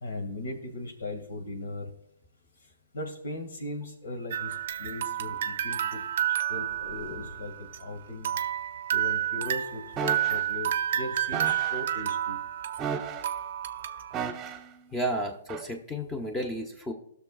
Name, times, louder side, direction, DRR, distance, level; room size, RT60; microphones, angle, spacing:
voice 1, 0.0-1.9 2.9-6.0 6.5-8.3 8.9-12.4, left 2 dB, 80° left, 5 dB, 2.1 m, -38 dB
sound 1, 4.3-7.8 8.2-14.2, right 11 dB, 60° right, 0.6 m, -30 dB
sound 2, 6.5-7.8 9.6-10.7 11.5-11.9, left 4 dB, 55° left, 1.5 m, -46 dB
sound 3, 10.0-10.4 11.3-11.8 12.8-13.4 14.1-14.7 15.5-15.7, right 7 dB, 25° right, 1.0 m, -34 dB
voice 2, 14.9-16.9, equal, 15° left, 3 dB, 1.1 m, -32 dB
19.0 x 6.5 x 2.4 m, 0.71 s
hypercardioid pair, 130°, 0 cm